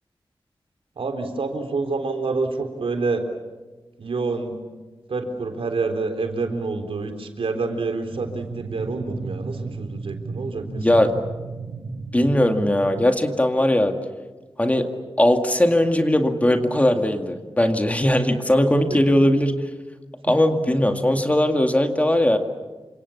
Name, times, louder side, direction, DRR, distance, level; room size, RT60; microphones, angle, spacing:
voice 1, 1.0-3.2 4.0-4.5 5.1-11.2 18.9-19.2, right 3 dB, 80° right, 5 dB, 3.7 m, -27 dB
sound 1, 8.1-13.1, right 4 dB, 65° right, 4.2 m, -34 dB
voice 2, 10.8-11.1 12.1-13.9 14.6-14.9 15.2-19.5 20.3-22.4, left 1 dB, 15° left, 5 dB, 2.1 m, -19 dB
28.5 x 26.0 x 7.2 m, 1.2 s
wide cardioid pair, 120°, 9 cm